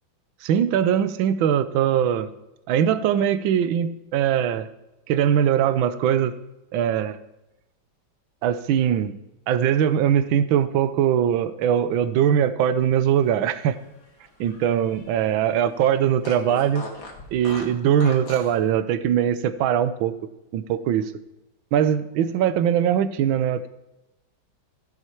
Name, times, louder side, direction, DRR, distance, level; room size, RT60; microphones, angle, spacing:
voice 1, 0.4-2.3 2.7-4.7 5.1-6.3 6.7-7.2 8.4-9.2 9.5-13.8 14.4-16.8 17.3-20.1 20.5-21.1 21.7-23.7, right 9 dB, 70° right, 13 dB, 1.4 m, -21 dB
Fart, 13.2-15.3 15.6-15.7 16.2-18.6, left 2 dB, 60° left, 2.6 m, -40 dB
14.5 x 8.0 x 4.5 m, 0.96 s
omnidirectional pair, 2.4 m